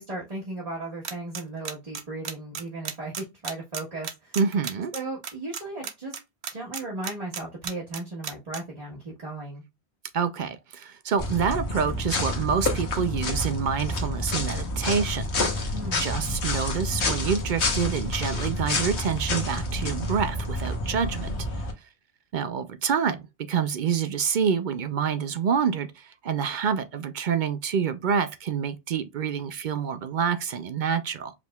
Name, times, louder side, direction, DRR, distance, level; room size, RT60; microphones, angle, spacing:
voice 1, 0.0-4.4 4.9-6.1 6.5-9.6 15.7-16.2, right 2 dB, 35° right, 1.3 m, -36 dB
sound 1, 1.0-8.6, right 7 dB, 75° right, 1.0 m, -33 dB
voice 2, 4.4-4.9 10.1-15.7 16.0-21.3 22.3-31.3, right 7 dB, 60° right, 0.6 m, -27 dB
sound 2, 11.2-21.7, left 2 dB, 85° left, 1.4 m, -28 dB
4.9 x 3.4 x 2.3 m
omnidirectional pair, 1.1 m